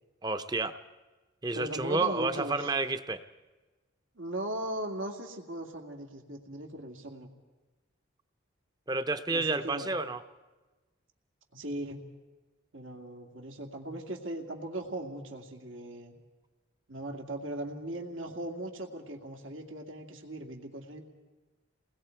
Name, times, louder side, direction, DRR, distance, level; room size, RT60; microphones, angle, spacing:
voice 1, 0.2-0.8 1.4-3.2 8.9-10.2, right 3 dB, 20° right, 10 dB, 0.7 m, -30 dB
voice 2, 1.5-2.7 4.1-7.3 9.3-9.9 11.5-12.1 12.7-16.1 16.9-21.0, right 1 dB, 85° right, 2 dB, 2.3 m, -38 dB
29.0 x 20.0 x 4.6 m, 1.2 s
head